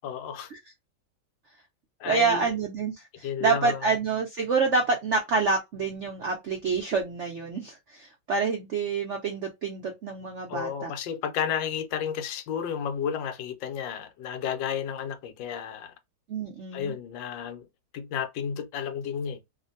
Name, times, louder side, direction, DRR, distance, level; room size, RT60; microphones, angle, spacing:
voice 1, 0.0-0.5 2.0-2.5 3.2-3.8 10.5-15.9 16.7-17.7 17.9-19.4, left 8 dB, 80° left, 1.3 m, -32 dB
voice 2, 2.1-10.9 16.3-16.9, right 4 dB, 75° right, 0.6 m, -27 dB
2.9 x 2.5 x 2.6 m
omnidirectional pair, 2.1 m